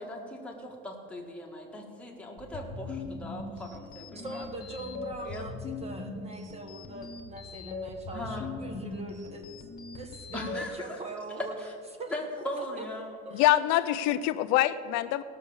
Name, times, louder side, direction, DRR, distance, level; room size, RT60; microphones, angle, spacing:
voice 1, 0.0-4.5 5.2-5.5 8.1-8.5 10.3-11.0 11.6-11.7 12.1-13.3, left 1 dB, 5° left, -1 dB, 1.6 m, -39 dB
sound 1, 2.4-10.6, left 3 dB, 30° left, 1.3 m, -40 dB
voice 2, 4.1-9.5 9.9-11.5 12.0-12.8 13.2-13.4, right 1 dB, 20° right, 5 dB, 1.2 m, -41 dB
voice 3, 13.3-15.2, left 14 dB, 70° left, 12 dB, 0.5 m, -25 dB
17.0 x 6.6 x 7.1 m, 2.6 s
cardioid pair, 160°, 29 cm